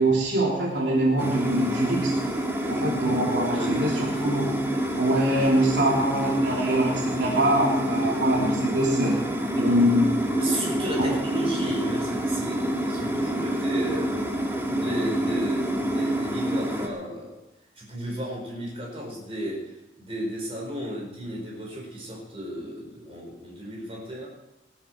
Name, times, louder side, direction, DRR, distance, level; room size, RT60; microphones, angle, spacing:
voice 1, 0.0-2.2 2.7-4.5 5.0-9.1 9.5-10.1 11.0-11.1, right 1 dB, 75° right, -2 dB, 3.3 m, -24 dB
sound 1, 1.2-16.9, right 1 dB, 15° right, 1.6 m, -27 dB
voice 2, 3.5-4.1 10.3-14.3 14.7-17.4 17.8-24.3, right 1 dB, 35° right, -1 dB, 5.0 m, -33 dB
19.0 x 11.5 x 4.6 m, 0.96 s
head